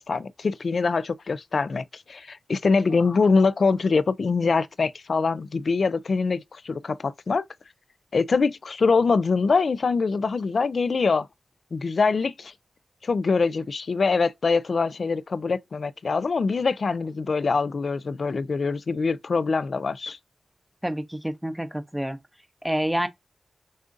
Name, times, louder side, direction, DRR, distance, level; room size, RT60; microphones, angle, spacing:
voice 1, 0.0-7.4 8.1-11.3 11.7-12.5 13.0-20.2, left 4 dB, 55° left, 0.3 m, -24 dB
voice 2, 20.8-22.2 22.6-23.1, equal, 5° right, 0.6 m, -28 dB
6.3 x 2.4 x 2.5 m
wide cardioid pair, 145°, 0 cm